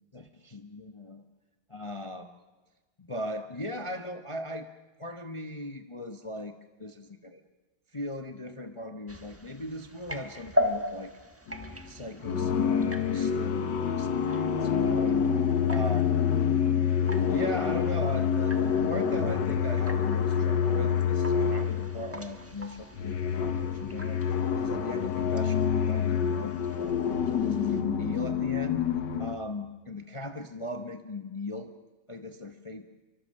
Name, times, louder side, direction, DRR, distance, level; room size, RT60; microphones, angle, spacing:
voice 1, 0.1-1.2 1.7-2.4 3.0-4.7 5.0-6.5 6.8-7.4 7.9-11.1 11.9-16.0 17.3-28.8 29.2-31.7 32.1-32.8, left 1 dB, 30° left, 7 dB, 0.5 m, -38 dB
sound 1, 9.1-27.8, left 1 dB, 10° right, 0.7 m, -40 dB
sound 2, 11.5-11.8 12.2-22.2 22.8-29.4, left 7 dB, 60° left, 1.7 m, -27 dB
27.5 x 24.0 x 6.6 m, 1.2 s
omnidirectional pair, 2.2 m